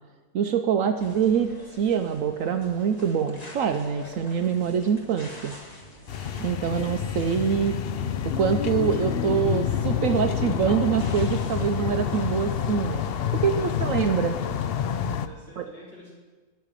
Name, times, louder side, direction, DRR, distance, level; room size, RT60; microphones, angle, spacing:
voice 1, 0.3-5.5 6.4-7.8 8.2-13.0 13.4-14.4 15.6-15.7, right 7 dB, 65° right, 7 dB, 0.9 m, -25 dB
sound 1, 1.0-14.8, left 1 dB, 25° left, 1.6 m, -47 dB
sound 2, 6.1-15.3, left 8 dB, 85° left, 0.5 m, -28 dB
voice 2, 13.1-14.3 14.9-16.1, left 1 dB, 45° left, -7 dB, 4.9 m, -47 dB
12.0 x 5.8 x 9.0 m, 1.3 s
omnidirectional pair, 1.6 m